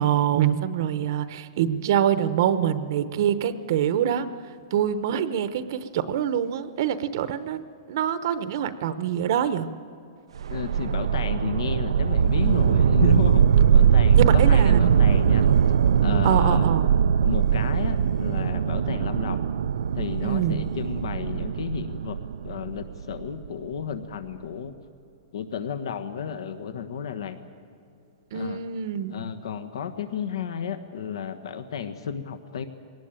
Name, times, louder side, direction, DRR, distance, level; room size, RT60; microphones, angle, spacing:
voice 1, 0.0-4.3 4.7-9.7 14.1-15.2 16.2-16.9 20.2-20.6 28.3-29.2, right 9 dB, 45° right, 12 dB, 0.9 m, -25 dB
sound 1, 10.4-23.5, right 8 dB, 85° right, 0.5 m, -21 dB
voice 2, 10.5-13.4 13.7-15.5 16.0-16.8 17.2-19.4 19.9-22.2 22.4-24.7 25.3-27.4 28.3-28.6 29.1-32.6, left 8 dB, 70° left, 10 dB, 1.3 m, -32 dB
22.0 x 18.5 x 9.0 m, 2.6 s
hypercardioid pair, 175°, 3 cm